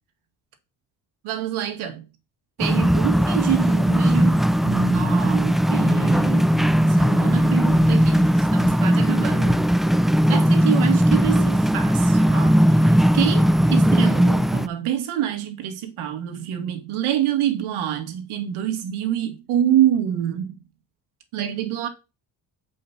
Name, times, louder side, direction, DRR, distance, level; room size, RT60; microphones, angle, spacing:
voice 1, 1.2-2.0 2.6-9.6 10.3-20.6 21.3-21.9, right 10 dB, 75° right, 2.1 m, -26 dB
sound 1, 2.6-14.7, equal, ahead, 0.4 m, -18 dB
6.5 x 5.4 x 5.9 m
supercardioid pair, 60°, 49 cm